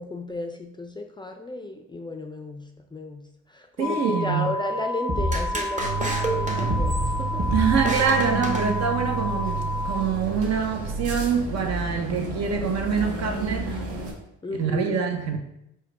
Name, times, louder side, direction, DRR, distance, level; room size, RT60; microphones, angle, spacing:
voice 1, 0.0-7.4 14.4-15.0, left 2 dB, 15° left, 4 dB, 0.4 m, -34 dB
sound 1, 3.8-10.0, left 2 dB, 90° left, 0.6 m, -31 dB
voice 2, 3.8-4.5 7.5-13.7 14.5-15.4, right 6 dB, 60° right, 4 dB, 0.8 m, -25 dB
sound 2, 5.1-9.2, right 1 dB, 25° right, 0.8 m, -28 dB
sound 3, 5.8-14.1, right 4 dB, 90° right, 1.1 m, -31 dB
4.6 x 2.2 x 4.6 m, 0.82 s
cardioid pair, 90°, 30 cm